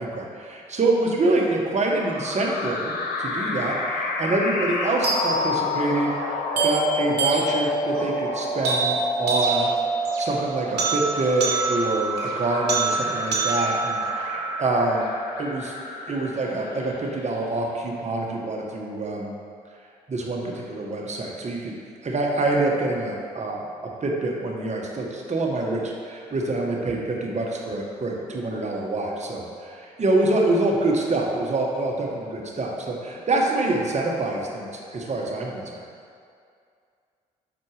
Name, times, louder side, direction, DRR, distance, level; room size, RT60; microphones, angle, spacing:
voice 1, 0.0-9.7 10.2-15.1 15.4-15.7 16.1-19.3 20.1-21.7 22.0-23.6 24.0-35.8, right 2 dB, 45° right, -1 dB, 1.3 m, -26 dB
sound 1, 1.9-17.6, left 2 dB, 70° left, 0.8 m, -32 dB
sound 2, 5.0-15.1, right 3 dB, 75° right, 1.1 m, -26 dB
6.1 x 4.4 x 4.8 m, 2.3 s
supercardioid pair, 50°, 17 cm